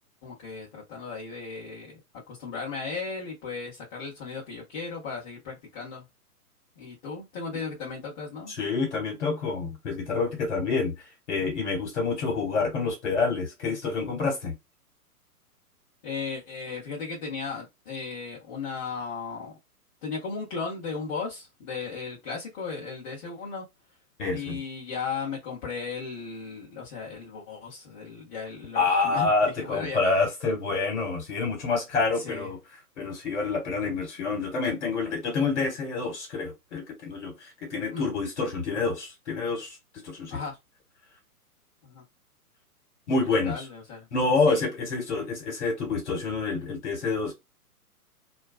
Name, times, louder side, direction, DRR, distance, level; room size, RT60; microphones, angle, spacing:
voice 1, 0.2-6.1 6.8-8.5 16.0-19.5 20.0-23.6 24.3-29.3 29.6-30.0 32.2-32.5 37.9-38.1 40.3-40.5 41.8-42.0 43.4-44.1 44.5-44.6, left 5 dB, 25° left, 0.8 m, -36 dB
voice 2, 8.6-10.9 11.3-14.5 24.2-24.6 28.7-32.6 33.0-39.8 40.0-40.4 43.1-43.6 44.1-47.3, left 4 dB, 50° left, 1.4 m, -27 dB
2.4 x 2.2 x 2.3 m
figure-of-eight pair, 115°, 46 cm